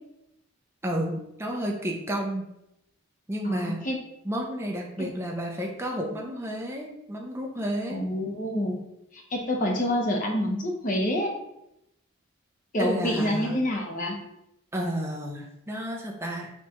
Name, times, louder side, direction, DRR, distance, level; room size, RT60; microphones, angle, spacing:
voice 1, 0.8-2.5 3.3-3.8 4.2-8.0 12.8-13.6 14.7-16.5, equal, 10° right, 0 dB, 0.5 m, -31 dB
voice 2, 3.4-4.0 5.0-5.1 7.9-8.8 9.1-11.3 12.7-14.2, left 1 dB, 40° left, 0 dB, 0.8 m, -27 dB
4.4 x 2.4 x 4.2 m, 0.84 s
head